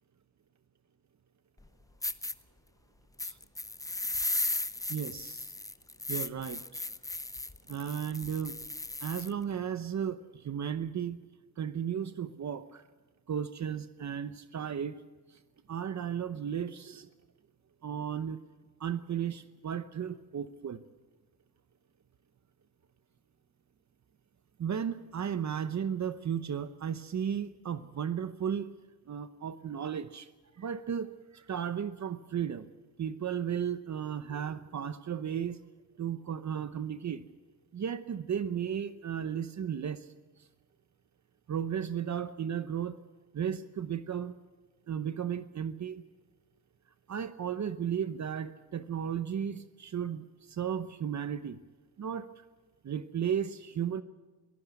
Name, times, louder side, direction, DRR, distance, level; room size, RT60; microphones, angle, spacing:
sound 1, 1.6-1.7 2.0-2.3 3.2-9.3, left 2 dB, 10° left, 0.6 m, -36 dB
voice 1, 4.9-5.5 6.1-6.8 7.7-8.5 9.0-11.2 11.6-12.8 13.3-15.0 15.3-15.4 15.7-17.1 17.8-18.4 18.8-20.8 24.6-28.7 29.1-30.3 30.5-32.7 33.0-35.6 36.0-37.2 37.7-40.1 41.5-43.0 43.3-44.3 44.9-46.0 47.1-51.6 52.0-52.3 52.8-54.0, right 8 dB, 45° right, 12 dB, 0.9 m, -34 dB
22.0 x 15.5 x 8.2 m, 1.3 s
wide cardioid pair, 150°, 38 cm